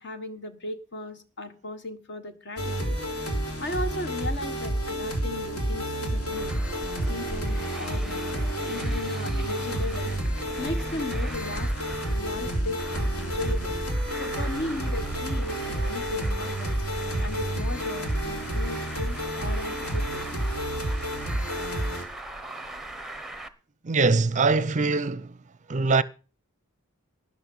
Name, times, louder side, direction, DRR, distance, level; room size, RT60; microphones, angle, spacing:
voice 1, 0.0-3.0 3.6-6.6 7.1-10.2 10.6-11.7 12.1-13.8 14.2-16.8 17.2-20.3 20.8-20.9, left 2 dB, 55° left, 1.4 m, -36 dB
sound 1, 2.6-22.0, right 1 dB, 75° left, 3.3 m, -30 dB
Traffic noise roadway noise, 6.3-23.5, right 1 dB, ahead, 0.8 m, -38 dB
voice 2, 23.8-25.3 25.7-26.0, right 3 dB, 35° right, 0.5 m, -22 dB
12.5 x 11.0 x 5.4 m
head